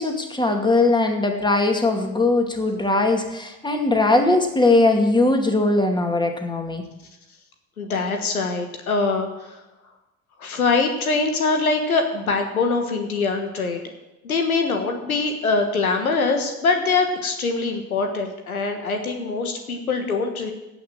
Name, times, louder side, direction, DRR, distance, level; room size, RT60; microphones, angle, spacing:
voice 1, 0.0-6.8, left 2 dB, 10° left, 4 dB, 2.3 m, -20 dB
voice 2, 7.8-9.6 10.4-13.8 14.2-20.5, left 4 dB, 90° left, 5 dB, 1.5 m, -23 dB
17.0 x 5.9 x 7.6 m, 1.0 s
hypercardioid pair, 65°, 42 cm